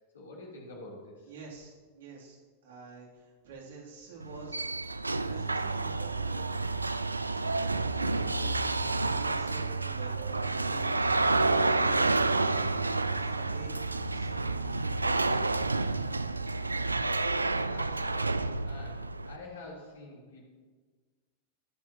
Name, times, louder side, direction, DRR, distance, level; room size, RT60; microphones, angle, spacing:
voice 1, 0.1-1.3 17.2-20.5, left 2 dB, 65° left, -4 dB, 3.3 m, -48 dB
voice 2, 1.3-4.6 4.9-6.5 7.4-12.7 13.1-15.4, right 4 dB, 60° right, -3 dB, 2.7 m, -48 dB
sound 1, 4.2-19.4, right 3 dB, 80° right, 0.3 m, -29 dB
20.0 x 7.1 x 2.9 m, 1.5 s
figure-of-eight pair, 90°, 0 cm